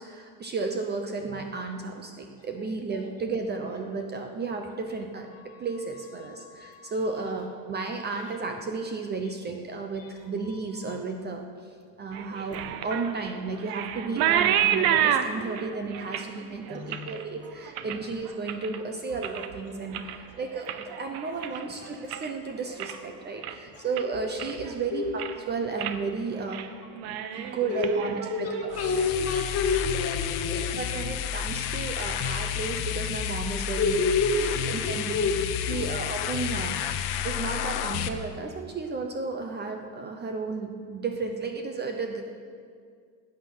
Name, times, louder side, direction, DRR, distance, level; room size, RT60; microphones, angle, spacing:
voice 1, 0.0-11.7 12.0-26.6 27.1-28.7 30.7-33.9 34.7-35.3 35.7-36.8 37.2-42.2, right 4 dB, 25° right, 4 dB, 0.8 m, -33 dB
voice 2, 5.3-5.7 6.2-7.1 10.0-11.0 14.1-14.3 16.7-17.1 20.1-20.4 21.4-21.9 22.9-23.0 23.3-23.4 23.7-24.2 24.9-25.2 27.3-30.8 33.8-35.3 35.7-35.9 36.2-36.3, left 4 dB, 35° left, 2 dB, 1.9 m, -30 dB
sound 1, 12.1-18.8 19.1-19.6 19.9-22.4 22.7-23.1 23.4-23.5 24.0-24.8 25.0-25.4 25.8-26.0 26.3-26.7 26.9-28.8, right 10 dB, 65° right, 0.9 m, -30 dB
sound 2, 28.7-38.1, left 9 dB, 70° left, 1.0 m, -31 dB
19.0 x 8.8 x 5.6 m, 2.1 s
cardioid pair, 160°, 40 cm